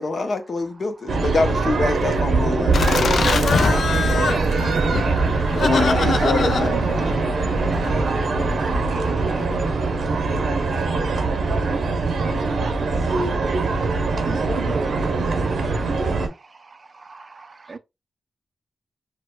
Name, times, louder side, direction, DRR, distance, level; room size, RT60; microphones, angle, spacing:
voice 1, 0.0-4.1 5.6-6.8, left 3 dB, 60° left, 0.7 m, -25 dB
sound 1, 1.1-16.3, right 3 dB, 85° right, 0.7 m, -22 dB
Laughter, 2.7-7.9, left 5 dB, 80° left, 0.3 m, -25 dB
sound 2, 3.1-10.0, left 2 dB, 35° left, 1.1 m, -34 dB
voice 2, 4.0-5.1, left 1 dB, 15° left, 1.5 m, -41 dB
voice 3, 9.9-10.9 14.2-17.8, right 4 dB, 45° right, 0.4 m, -41 dB
4.6 x 2.1 x 2.2 m
wide cardioid pair, 85°, 0 cm